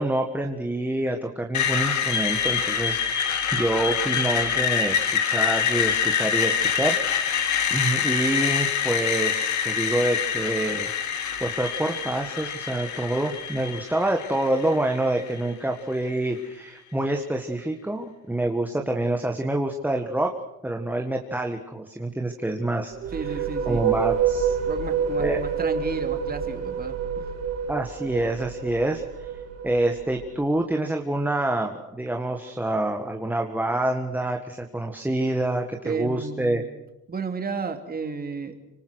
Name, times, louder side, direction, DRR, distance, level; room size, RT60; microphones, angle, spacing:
voice 1, 0.0-7.3 7.7-10.9 11.4-20.3 20.6-22.9 23.3-23.4 23.7-24.6 25.2-25.4 27.7-29.3 29.6-36.6, right 1 dB, 5° right, 3 dB, 1.7 m, -27 dB
Screech, 1.5-15.5, left 8 dB, 60° left, 2.3 m, -26 dB
sound 1, 22.9-30.5, right 7 dB, 50° right, 2.9 m, -28 dB
voice 2, 23.1-23.9 24.7-27.3 35.8-36.7 37.1-38.6, right 5 dB, 25° right, 5 dB, 3.3 m, -32 dB
26.0 x 25.5 x 6.4 m, 0.98 s
cardioid pair, 110°, 34 cm